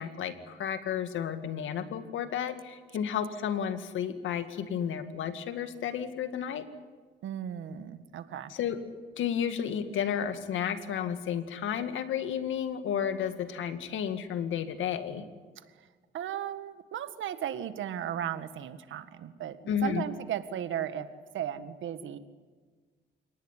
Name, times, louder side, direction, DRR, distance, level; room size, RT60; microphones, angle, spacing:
voice 1, 0.0-6.7 8.5-8.8 9.2-15.3 19.7-20.0, left 8 dB, 75° left, 9 dB, 2.2 m, -32 dB
voice 2, 7.2-8.5 16.1-21.1 21.3-22.2, right 10 dB, 75° right, 11 dB, 1.8 m, -36 dB
28.5 x 18.5 x 9.9 m, 1.4 s
cardioid pair, 90°, 20 cm